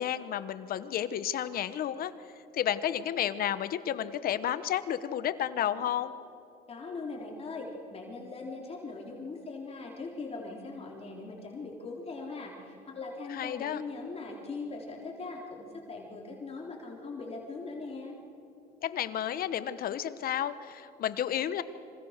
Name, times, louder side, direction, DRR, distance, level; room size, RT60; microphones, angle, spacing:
voice 1, 0.0-2.1 2.5-6.1 13.3-13.8 18.8-21.6, left 10 dB, 60° left, 13 dB, 1.2 m, -31 dB
voice 2, 6.7-18.2, left 3 dB, 35° left, -1 dB, 3.9 m, -40 dB
27.0 x 26.0 x 6.7 m, 2.6 s
cardioid pair, 110°, 17 cm